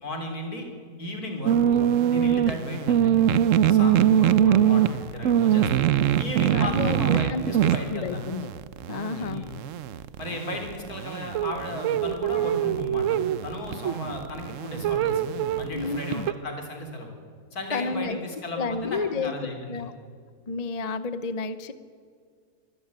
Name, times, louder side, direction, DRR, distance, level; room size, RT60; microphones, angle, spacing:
voice 1, 0.0-0.7 1.0-3.2 3.6-5.8 6.2-8.3 9.2-9.5 10.2-15.2 15.6-17.1 17.5-19.8, left 1 dB, 70° left, 3 dB, 3.8 m, -35 dB
sound 1, 1.5-16.3, right 10 dB, 65° right, 1.0 m, -23 dB
voice 2, 6.5-8.5 8.9-9.5 15.7-16.3 17.7-18.2 18.6-19.9 20.5-21.7, left 4 dB, 35° left, 12 dB, 0.6 m, -31 dB
24.5 x 13.0 x 9.6 m, 2.2 s
omnidirectional pair, 1.7 m